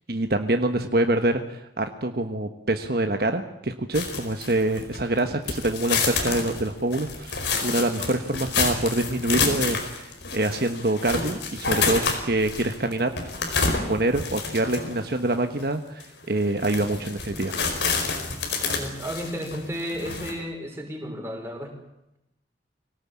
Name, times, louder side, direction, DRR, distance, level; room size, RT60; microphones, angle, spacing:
voice 1, 0.1-7.3 7.6-13.1 13.9-17.5 18.6-18.8, right 2 dB, 55° right, 6 dB, 1.3 m, -25 dB
sound 1, 3.9-5.2 5.5-15.1 15.6-15.7 16.0-16.1 16.5-20.3, left 4 dB, 75° left, 4.9 m, -28 dB
voice 2, 18.6-21.7, equal, 15° right, 1 dB, 5.3 m, -33 dB
24.0 x 18.5 x 8.6 m, 0.87 s
head